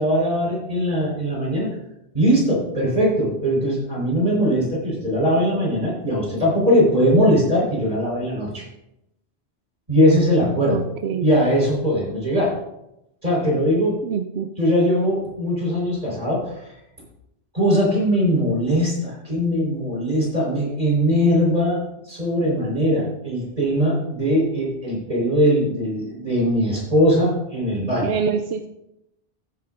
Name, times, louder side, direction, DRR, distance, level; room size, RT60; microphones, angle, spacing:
voice 1, 0.0-1.7 2.1-8.6 9.9-10.8 11.2-12.6 13.2-14.2 14.6-16.5 17.5-21.8 22.0-28.1, equal, 40° right, -3 dB, 4.3 m, -20 dB
voice 2, 10.7-11.3 14.0-14.5 28.0-28.7, right 6 dB, 90° right, 7 dB, 0.9 m, -25 dB
14.5 x 9.2 x 2.5 m, 0.86 s
omnidirectional pair, 1.1 m